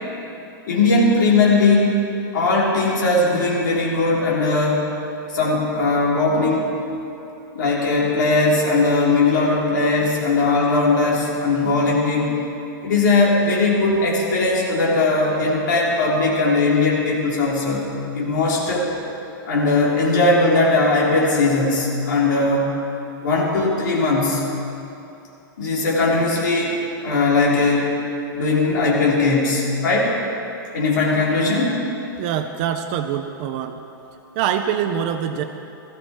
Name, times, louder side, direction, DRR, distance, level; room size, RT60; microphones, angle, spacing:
voice 1, 0.7-2.0 2.3-4.8 5.3-6.7 7.5-12.4 12.8-18.9 19.5-22.7 23.2-24.4 25.6-27.9 28.3-30.1 30.7-31.8, left 3 dB, 60° left, -4 dB, 4.0 m, -19 dB
voice 2, 32.2-33.8 34.4-35.4, right 9 dB, 25° right, 7 dB, 0.4 m, -24 dB
18.0 x 14.0 x 4.6 m, 2.8 s
supercardioid pair, 180°, 12 cm